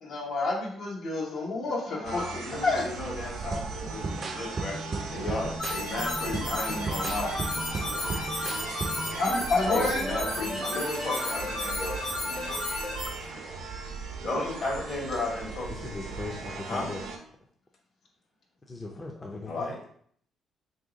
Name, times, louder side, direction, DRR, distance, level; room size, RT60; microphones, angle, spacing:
voice 1, 0.0-2.8 6.6-6.7 7.2-7.3 9.2-10.0, left 3 dB, 70° left, -2 dB, 0.9 m, -29 dB
voice 2, 1.9-4.8 5.1-7.3 9.6-12.6 14.2-15.9 16.7-16.9 19.5-19.9, left 2 dB, 55° left, -1 dB, 1.2 m, -34 dB
sound 1, 2.0-17.2, right 4 dB, 85° right, 0.6 m, -38 dB
sound 2, 3.5-9.2, right 2 dB, 40° right, 0.4 m, -36 dB
sound 3, 5.6-13.1, left 1 dB, 90° left, 1.3 m, -33 dB
voice 3, 15.7-17.0 18.7-19.6, left 3 dB, 25° left, 0 dB, 0.5 m, -38 dB
2.9 x 2.7 x 3.8 m, 0.62 s
cardioid pair, 90°, 0 cm